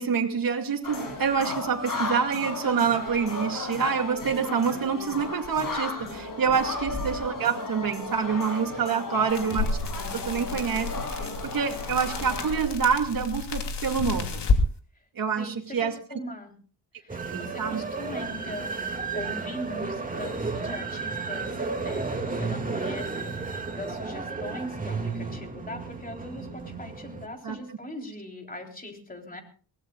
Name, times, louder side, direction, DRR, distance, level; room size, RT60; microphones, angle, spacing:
voice 1, 0.0-9.7 10.1-14.4 15.2-15.9 17.3-17.8 27.4-27.6, right 6 dB, 55° right, 3 dB, 2.5 m, -27 dB
sound 1, 0.8-12.6, left 2 dB, 50° left, 7.2 m, -35 dB
voice 2, 9.1-9.6 15.4-16.5 17.0-21.6 21.8-29.4, left 1 dB, 20° left, 3 dB, 3.7 m, -40 dB
sound 2, 9.3-14.6, left 4 dB, 80° left, 2.8 m, -30 dB
sound 3, 17.1-27.3, right 4 dB, 20° right, 2.4 m, -33 dB
23.0 x 19.0 x 2.4 m, 0.39 s
wide cardioid pair, 130°, 41 cm